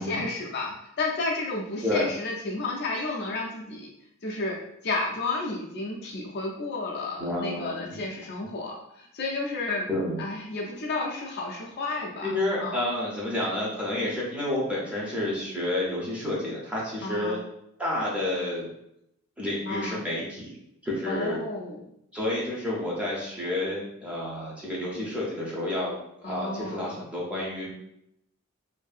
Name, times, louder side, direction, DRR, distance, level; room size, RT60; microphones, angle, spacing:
voice 1, 0.0-3.9 4.2-9.9 10.2-12.3 12.6-12.8 17.0-17.4 19.7-20.0 21.1-21.8 26.2-26.9, left 3 dB, 50° left, -2 dB, 0.4 m, -32 dB
voice 2, 7.2-7.9 9.9-10.2 12.2-17.4 17.8-18.7 19.4-20.6 20.8-21.4 22.1-27.7, left 1 dB, 5° right, -6 dB, 0.6 m, -30 dB
2.6 x 2.6 x 2.4 m, 0.79 s
head